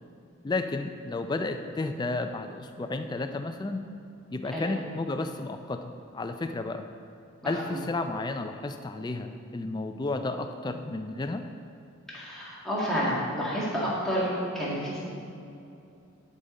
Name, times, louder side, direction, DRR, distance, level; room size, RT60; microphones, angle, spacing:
voice 1, 0.4-3.8 4.3-6.8 7.4-11.5, left 2 dB, 20° left, 7 dB, 0.3 m, -32 dB
voice 2, 7.4-7.8 12.1-15.0, equal, ahead, -8 dB, 1.9 m, -30 dB
11.0 x 5.1 x 3.9 m, 2.6 s
head